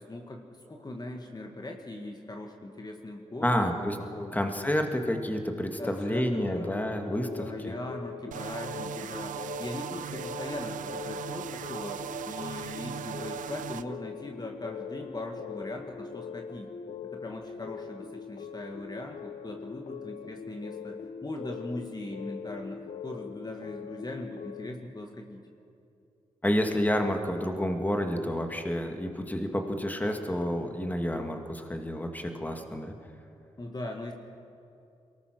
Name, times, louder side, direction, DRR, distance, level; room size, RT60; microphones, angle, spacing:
voice 1, 0.0-4.3 5.8-6.7 7.3-16.7 17.0-25.4 33.6-34.1, left 2 dB, 30° left, 2 dB, 2.0 m, -40 dB
voice 2, 3.4-4.0 4.3-7.7 26.4-32.9, equal, 10° left, 4 dB, 2.2 m, -29 dB
sound 1, 6.3-24.7, left 7 dB, 65° left, 1.0 m, -42 dB
sound 2, 8.3-13.8, right 9 dB, 80° right, 0.5 m, -38 dB
22.5 x 19.0 x 6.2 m, 2.6 s
supercardioid pair, 50°, 13 cm